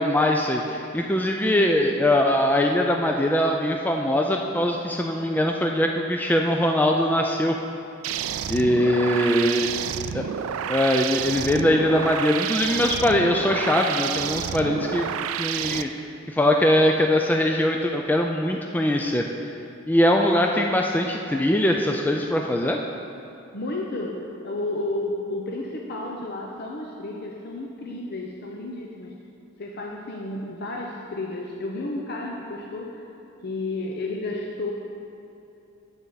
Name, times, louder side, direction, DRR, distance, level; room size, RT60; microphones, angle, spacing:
voice 1, 0.0-7.6 8.5-9.7 10.1-10.2 10.7-15.1 15.4-19.2 19.9-22.8, left 1 dB, 10° left, 2 dB, 0.3 m, -22 dB
sound 1, 8.0-15.8, right 9 dB, 85° right, 0.3 m, -29 dB
voice 2, 9.6-9.9 23.5-29.1 29.6-33.0 33.4-34.7, left 2 dB, 50° left, -1 dB, 0.7 m, -32 dB
9.7 x 8.0 x 4.0 m, 2.8 s
head